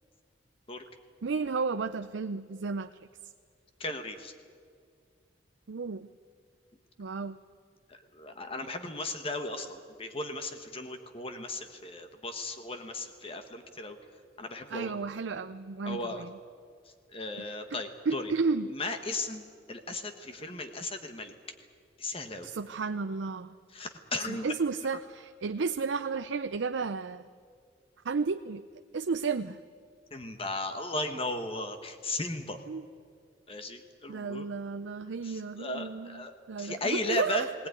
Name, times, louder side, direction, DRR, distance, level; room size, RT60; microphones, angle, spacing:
voice 1, 1.2-2.9 5.7-6.1 7.0-7.4 14.7-16.3 17.7-17.8 18.1-18.7 22.4-23.6 24.3-27.3 28.0-28.6 28.9-29.6 32.7-32.8 34.1-37.5, right 4 dB, 85° right, 9 dB, 0.5 m, -32 dB
voice 2, 3.8-4.3 7.9-14.0 14.4-14.9 15.8-16.2 17.1-18.3 18.6-21.3 22.0-22.5 23.7-24.5 30.1-32.6 33.5-34.5 35.2-36.3 36.6-37.5, left 2 dB, 30° left, 7 dB, 1.3 m, -36 dB
19.5 x 18.5 x 9.5 m, 2.2 s
head